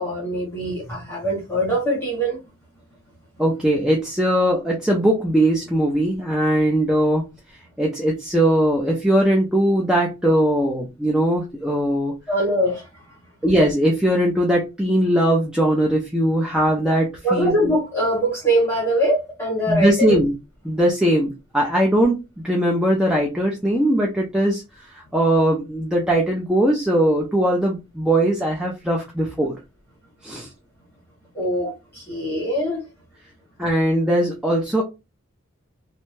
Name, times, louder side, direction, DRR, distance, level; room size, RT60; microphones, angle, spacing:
voice 1, 0.0-2.4 12.3-13.0 17.2-20.2 31.3-32.8, right 1 dB, 10° left, 0.8 m, -22 dB
voice 2, 3.4-7.3 7.8-12.1 13.4-17.5 19.7-20.3 20.6-22.2 22.4-29.6 30.2-30.5 33.6-34.8, right 1 dB, 5° right, 0.4 m, -20 dB
2.5 x 2.1 x 3.1 m
head